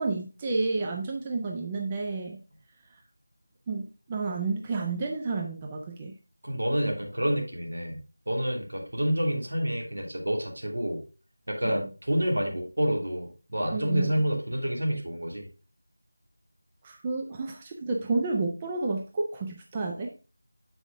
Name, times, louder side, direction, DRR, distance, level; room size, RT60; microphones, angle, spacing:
voice 1, 0.0-2.4 3.7-6.1 11.6-11.8 13.7-14.1 16.8-20.3, right 3 dB, 10° right, 1 dB, 0.3 m, -30 dB
voice 2, 6.4-8.0 8.3-11.0 11.5-15.5, equal, 70° right, 1 dB, 2.7 m, -28 dB
7.5 x 5.2 x 3.6 m, 0.33 s
figure-of-eight pair, 180°, 0 cm